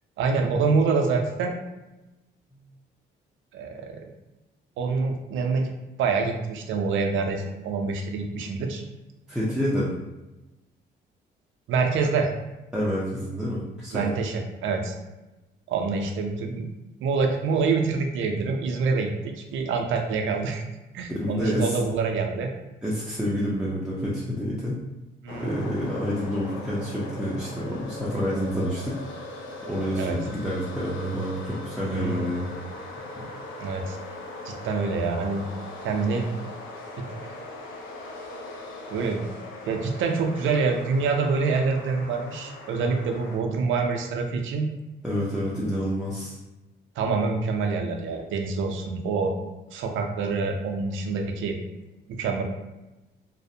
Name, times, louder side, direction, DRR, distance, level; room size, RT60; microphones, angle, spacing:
voice 1, 0.2-1.5 3.5-4.1 4.8-5.7 6.0-8.8 11.7-12.3 13.9-14.9 15.7-16.7 17.0-20.6 20.9-22.5 25.2-25.5 30.0-30.2 31.9-32.4 33.6-34.0 34.4-35.4 35.8-36.3 37.0-37.1 38.9-39.2 39.7-44.7 47.0-49.3 49.7-51.6 52.1-52.4, right 4 dB, 80° right, 3 dB, 0.4 m, -26 dB
voice 2, 9.3-10.0 12.7-14.0 21.1-21.8 22.8-24.8 25.3-28.9 29.7-32.6 33.2-33.3 45.0-46.4, equal, 5° right, -8 dB, 0.5 m, -28 dB
sound 1, 25.3-43.4, left 2 dB, 80° left, 0.4 m, -40 dB
2.5 x 2.0 x 2.6 m, 1.0 s
cardioid pair, 90°, 20 cm